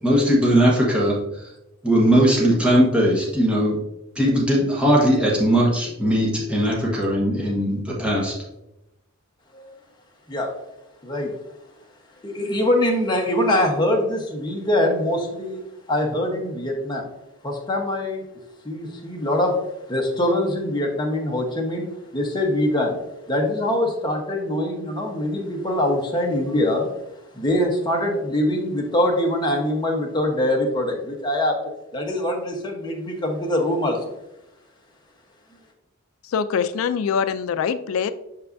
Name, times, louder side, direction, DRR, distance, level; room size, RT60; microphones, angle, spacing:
voice 1, 0.0-1.4 1.8-3.8 4.1-8.3, equal, 5° right, -4 dB, 1.2 m, -19 dB
voice 2, 11.0-11.3 12.2-15.6 15.9-17.1 17.4-18.2 18.6-19.6 19.9-23.0 23.3-26.9 27.3-31.6 31.9-34.1, left 1 dB, 20° left, 0 dB, 1.0 m, -23 dB
voice 3, 36.3-38.1, left 6 dB, 70° left, 12 dB, 0.3 m, -23 dB
6.7 x 5.5 x 2.6 m, 0.90 s
head